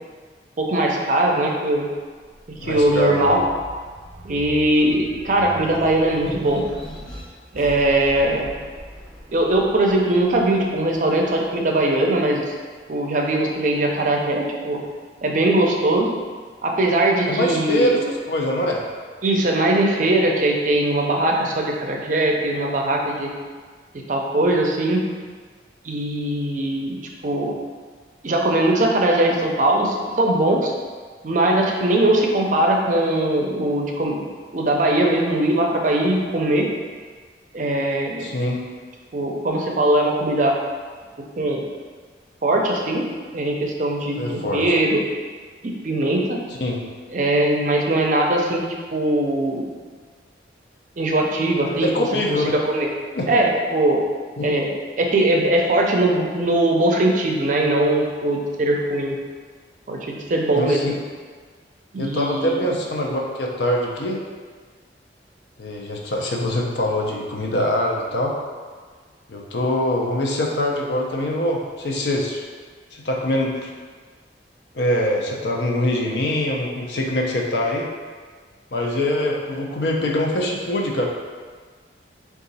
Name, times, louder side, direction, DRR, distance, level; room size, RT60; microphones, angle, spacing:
voice 1, 0.6-1.9 2.7-3.5 4.2-6.6 7.5-8.5 9.3-12.5 12.9-14.8 15.2-16.1 16.6-17.9 19.2-23.3 24.1-25.0 25.8-27.0 27.2-27.5 28.2-30.7 31.2-34.3 34.5-36.7 37.5-38.5 39.1-40.5 41.4-41.6 42.4-43.0 43.3-45.0 45.6-46.4 47.1-48.6 48.9-49.7 51.0-52.9 53.3-54.0 54.4-59.2 59.9-60.8 61.9-62.6, right 1 dB, 45° right, 0 dB, 0.5 m, -20 dB
sound 1, 2.2-12.8 13.3-14.4, equal, 5° left, 0.6 m, -41 dB
voice 2, 2.6-3.4 17.3-18.0 18.3-18.8 38.2-38.6 44.2-44.6 46.6-46.8 51.7-52.6 53.2-53.3 54.4-54.5 60.5-61.0 62.0-64.2 65.6-68.3 69.3-72.4 73.0-73.7 74.7-77.9 78.7-81.1, left 1 dB, 75° left, -1 dB, 0.6 m, -23 dB
3.9 x 2.4 x 4.0 m, 1.5 s
head